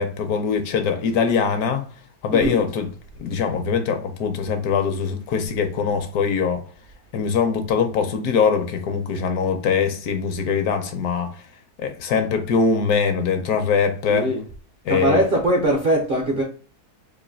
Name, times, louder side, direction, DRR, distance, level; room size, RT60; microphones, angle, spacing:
voice 1, 0.0-1.9 2.2-2.9 3.2-6.6 7.1-11.4 11.8-14.3 14.8-15.2, left 6 dB, 70° left, 1.0 m, -22 dB
voice 2, 14.1-14.4 14.9-16.4, right 1 dB, 55° right, 0.6 m, -21 dB
3.1 x 2.5 x 3.8 m
omnidirectional pair, 1.7 m